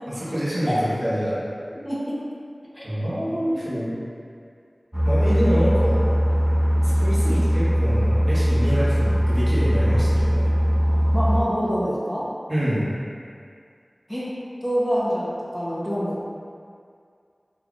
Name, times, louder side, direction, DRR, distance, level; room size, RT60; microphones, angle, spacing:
voice 1, 0.1-1.4 2.8-3.9 5.0-6.0 7.0-10.5 12.5-12.9, equal, 30° right, -11 dB, 1.3 m, -25 dB
voice 2, 1.7-2.1 2.7-2.9 3.3-4.0 11.1-12.2 14.1-14.3 14.6-16.3, equal, 10° left, -8 dB, 0.9 m, -26 dB
sound 1, 4.9-11.4, equal, 15° right, 0.5 m, -20 dB
3.7 x 3.1 x 2.4 m, 2.2 s
wide cardioid pair, 55°, 0 cm